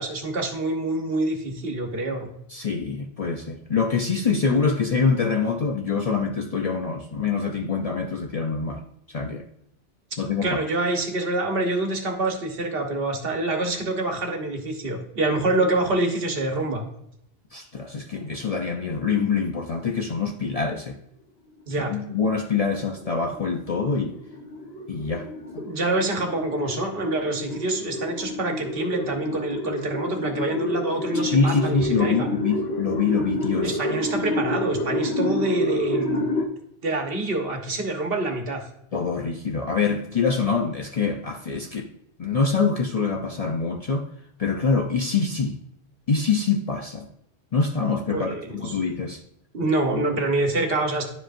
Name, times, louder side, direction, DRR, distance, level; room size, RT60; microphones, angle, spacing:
voice 1, 0.0-2.3 10.4-16.9 21.7-22.0 25.6-32.3 33.6-36.2 36.8-38.6 48.1-48.8 49.5-51.0, right 2 dB, 65° right, 4 dB, 1.2 m, -26 dB
voice 2, 2.5-9.5 10.2-10.6 17.5-21.0 21.8-24.2 24.9-25.7 31.1-33.8 38.9-41.9 42.2-44.1 44.4-45.6 46.1-47.1 47.5-49.2, left 5 dB, 50° left, 3 dB, 0.5 m, -25 dB
sound 1, 22.1-36.4, left 1 dB, 70° left, 1.2 m, -29 dB
10.5 x 5.0 x 2.5 m, 0.78 s
omnidirectional pair, 1.1 m